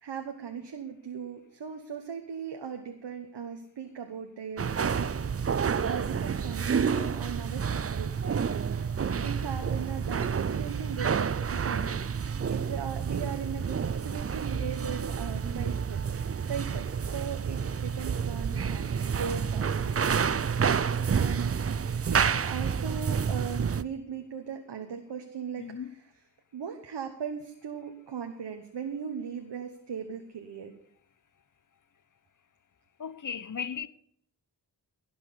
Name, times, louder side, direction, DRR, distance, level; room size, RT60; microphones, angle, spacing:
voice 1, 0.0-5.4 5.9-20.6 21.1-21.6 22.1-25.7 26.5-30.7, right 7 dB, 85° right, 1.2 m, -38 dB
sound 1, 4.6-23.8, right 6 dB, 35° right, 0.5 m, -29 dB
voice 2, 25.6-25.9 33.0-33.9, left 7 dB, 50° left, 0.8 m, -36 dB
17.0 x 6.2 x 6.8 m
cardioid pair, 55°, 40 cm